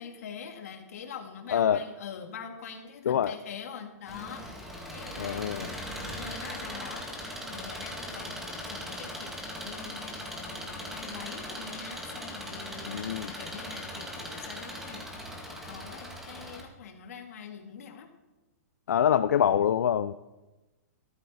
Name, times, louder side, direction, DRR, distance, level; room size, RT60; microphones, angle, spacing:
voice 1, 0.0-18.1, left 7 dB, 65° left, 5 dB, 2.1 m, -44 dB
voice 2, 1.5-1.8 3.1-3.3 5.2-5.7 12.9-13.3 18.9-20.1, left 9 dB, 90° left, 12 dB, 0.5 m, -25 dB
Engine, 4.1-16.6, equal, 5° right, 1.9 m, -39 dB
13.5 x 13.5 x 4.2 m, 1.1 s
hypercardioid pair, 160°, 9 cm